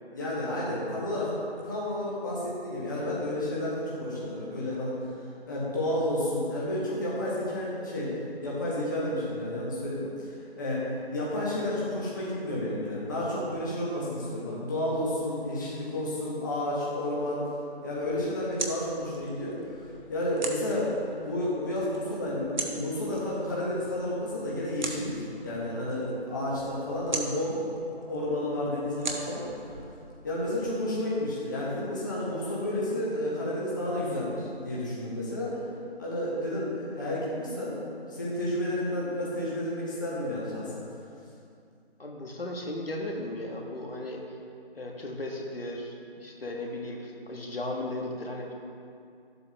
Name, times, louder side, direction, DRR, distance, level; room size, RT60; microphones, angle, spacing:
voice 1, 0.1-1.3 1.6-5.0 5.5-8.1 8.4-17.5 17.8-19.6 20.1-20.9 21.2-29.4 30.2-35.5 36.0-37.7 38.1-40.8, left 1 dB, 20° left, -7 dB, 1.0 m, -31 dB
sound 1, 17.9-30.7, right 2 dB, 45° right, 1.0 m, -41 dB
voice 2, 42.0-44.2 44.7-48.5, left 1 dB, 65° left, 0 dB, 1.5 m, -36 dB
12.0 x 7.8 x 3.0 m, 2.4 s
figure-of-eight pair, 160°, 32 cm